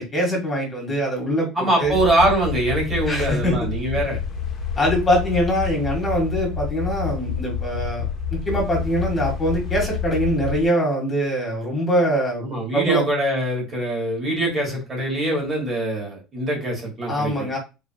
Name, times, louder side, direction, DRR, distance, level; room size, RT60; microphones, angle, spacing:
voice 1, 0.0-2.0 3.1-3.6 4.8-8.1 8.3-12.4 12.7-13.0 17.1-17.6, equal, 15° left, -2 dB, 1.9 m, -23 dB
voice 2, 1.5-4.2 12.4-17.5, right 1 dB, 20° right, -1 dB, 2.1 m, -23 dB
sound 1, 1.8-10.7, left 8 dB, 30° left, 1.1 m, -28 dB
4.9 x 4.6 x 2.3 m, 0.28 s
cardioid pair, 170°, 0 cm